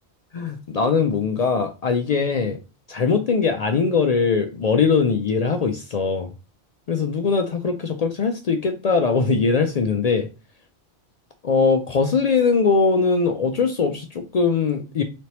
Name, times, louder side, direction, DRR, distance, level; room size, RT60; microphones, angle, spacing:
voice 1, 0.3-2.6 2.9-6.3 6.9-10.3 11.4-15.0, left 5 dB, 70° left, 6 dB, 0.3 m, -21 dB
4.2 x 3.1 x 2.9 m, 0.32 s
omnidirectional pair, 1.2 m